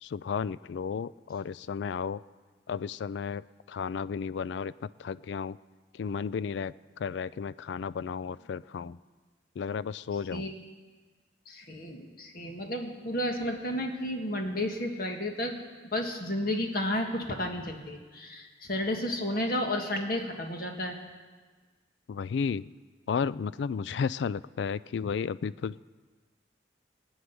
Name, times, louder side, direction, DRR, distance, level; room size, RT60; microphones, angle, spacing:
voice 1, 0.0-2.2 2.7-5.6 5.9-9.0 9.6-10.5 22.1-22.7 23.1-25.8, left 6 dB, 70° left, 18 dB, 0.3 m, -33 dB
voice 2, 11.5-15.6 15.8-21.0, left 1 dB, 50° left, 3 dB, 1.8 m, -32 dB
18.5 x 6.4 x 9.5 m, 1.4 s
head